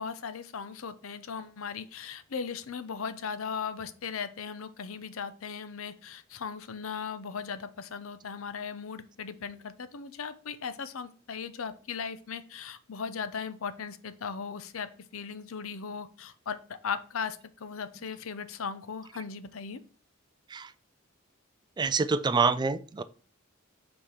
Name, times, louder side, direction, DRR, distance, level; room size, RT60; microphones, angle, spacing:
voice 1, 0.0-19.8, left 6 dB, 85° left, 13 dB, 0.6 m, -38 dB
voice 2, 21.8-23.0, right 4 dB, 20° right, 14 dB, 0.3 m, -26 dB
5.6 x 4.4 x 4.9 m, 0.40 s
head